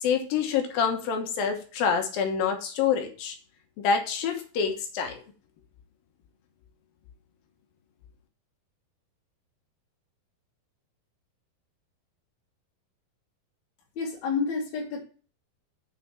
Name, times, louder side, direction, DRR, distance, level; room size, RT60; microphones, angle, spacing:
voice 1, 0.0-3.4 3.8-5.2, left 6 dB, 75° left, 5 dB, 2.9 m, -27 dB
voice 2, 14.0-15.0, left 5 dB, 50° left, -2 dB, 3.0 m, -29 dB
7.1 x 6.0 x 5.9 m, 0.39 s
omnidirectional pair, 4.4 m